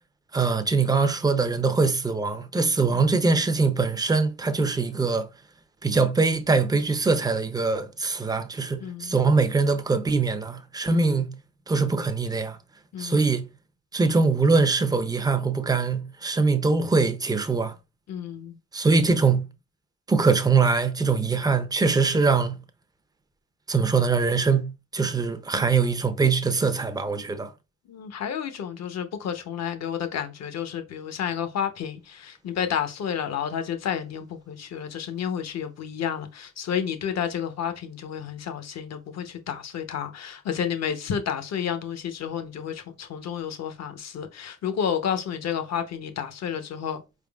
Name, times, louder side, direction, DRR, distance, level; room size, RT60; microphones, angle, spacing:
voice 1, 0.3-5.3 5.8-11.3 11.7-12.6 13.0-13.5 13.9-17.7 18.7-19.5 20.1-22.6 23.7-27.5, right 4 dB, 15° right, 0.5 m, -23 dB
voice 2, 8.8-9.2 10.9-11.2 12.9-13.3 18.1-18.6 27.9-47.0, left 8 dB, 60° left, 0.8 m, -31 dB
4.4 x 3.6 x 2.3 m
cardioid pair, 90°, 30 cm